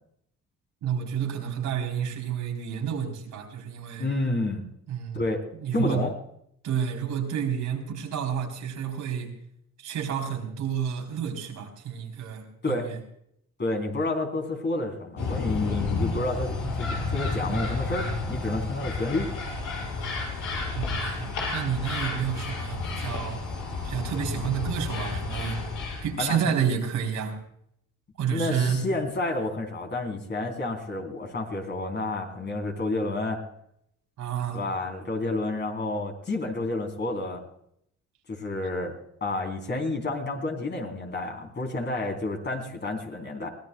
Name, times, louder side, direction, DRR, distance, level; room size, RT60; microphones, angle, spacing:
voice 1, 0.8-4.1 4.9-5.3 5.6-6.0 6.6-9.3 9.8-13.0 20.7-23.4 23.8-25.6 26.0-27.4 28.2-28.8 34.2-34.6, right 8 dB, 80° right, 2 dB, 3.9 m, -30 dB
voice 2, 4.0-4.6 5.1-5.4 5.7-6.1 12.6-12.9 13.6-19.3 26.2-26.5 28.3-33.4 34.5-37.4 38.3-39.0 39.2-43.5, left 2 dB, 35° left, 3 dB, 3.8 m, -30 dB
sound 1, 15.2-26.2, left 3 dB, 85° left, 6.2 m, -31 dB
23.5 x 17.5 x 2.3 m, 0.71 s
cardioid pair, 90°, 30 cm